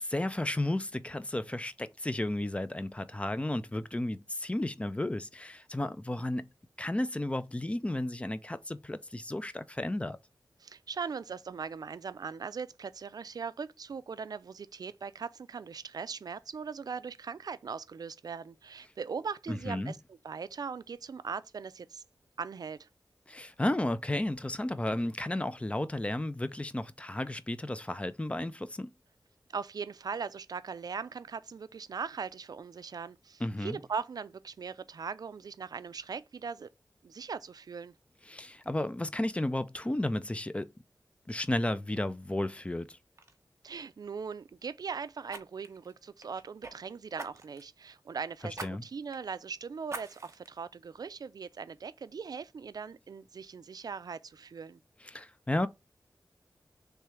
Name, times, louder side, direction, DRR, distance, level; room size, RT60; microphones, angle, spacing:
voice 1, 0.0-6.5 6.8-10.2 19.5-19.9 23.3-28.9 33.4-33.8 38.3-40.7 41.3-43.0 48.6-48.8 55.1-55.7, left 1 dB, 15° left, 0.4 m, -33 dB
voice 2, 10.6-22.0 22.4-22.9 29.5-36.7 37.0-37.9 43.6-54.8, right 5 dB, 65° right, 0.4 m, -40 dB
Fire, 42.6-42.8 43.2-43.4 45.3-46.7 47.2-47.7 48.5-48.7 49.1-49.2 49.9-50.5 51.0-51.1, right 3 dB, 40° right, 0.9 m, -43 dB
3.3 x 3.1 x 4.7 m
wide cardioid pair, 80°, 7 cm